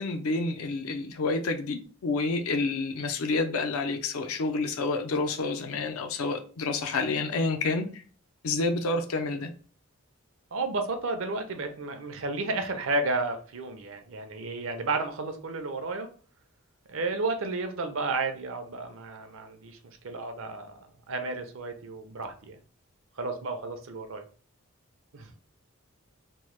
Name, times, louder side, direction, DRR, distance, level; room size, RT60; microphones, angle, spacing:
voice 1, 0.0-8.0 8.4-9.5, left 3 dB, 75° left, 0.5 m, -29 dB
voice 2, 10.5-16.1 16.9-19.8 20.0-22.6 23.2-24.2 25.1-25.3, right 3 dB, 65° right, 0.5 m, -32 dB
3.0 x 2.1 x 3.0 m
head